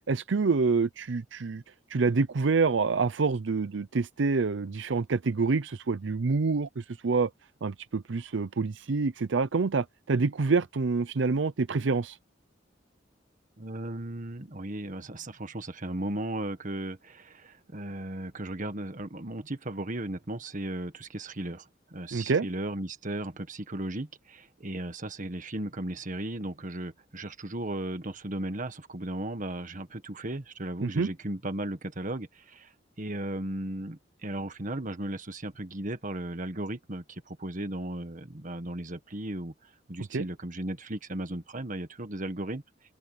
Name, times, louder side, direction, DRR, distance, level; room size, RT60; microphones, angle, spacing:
voice 1, 0.1-1.6 1.9-7.3 7.6-12.2 22.1-22.5 30.8-31.1 40.1-40.3, right 4 dB, 75° right, 0.6 m, -27 dB
voice 2, 13.6-32.7 33.0-42.6, right 1 dB, 45° right, 1.7 m, -36 dB
open air
head